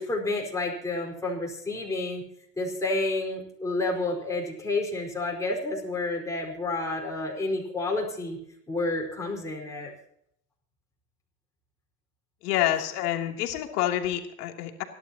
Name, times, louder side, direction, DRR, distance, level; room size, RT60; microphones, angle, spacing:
voice 1, 0.0-2.2 2.6-8.4 8.7-9.9, left 2 dB, 5° left, -2 dB, 4.7 m, -30 dB
voice 2, 12.4-14.8, left 12 dB, 65° left, 2 dB, 3.0 m, -28 dB
28.0 x 12.0 x 2.9 m, 0.68 s
hypercardioid pair, 125°, 50 cm